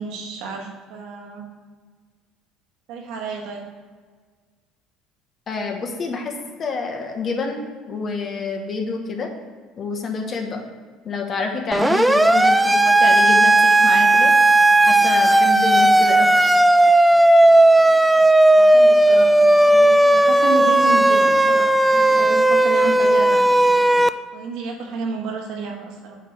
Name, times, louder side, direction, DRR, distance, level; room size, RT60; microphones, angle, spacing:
voice 1, 0.0-1.4 2.9-3.6 18.5-23.5 24.3-26.2, right 4 dB, 70° right, 0 dB, 1.7 m, -31 dB
voice 2, 5.5-6.3 6.6-9.3 9.8-10.6 11.0-14.3 14.9-16.5, left 4 dB, 35° left, 3 dB, 1.2 m, -27 dB
Siren, 11.7-24.1, right 1 dB, 5° right, 0.3 m, -14 dB
7.8 x 3.3 x 6.3 m, 1.5 s
cardioid pair, 115°, 0 cm